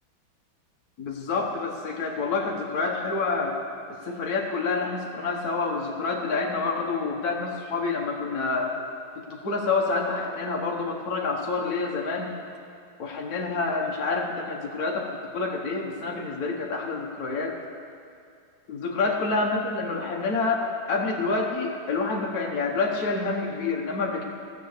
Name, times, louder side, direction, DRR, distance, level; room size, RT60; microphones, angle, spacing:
voice 1, 1.0-3.6 4.0-8.8 9.2-12.3 13.0-17.6 18.7-24.2, left 3 dB, 50° left, -1 dB, 1.6 m, -28 dB
14.0 x 8.0 x 6.7 m, 2.4 s
omnidirectional pair, 2.2 m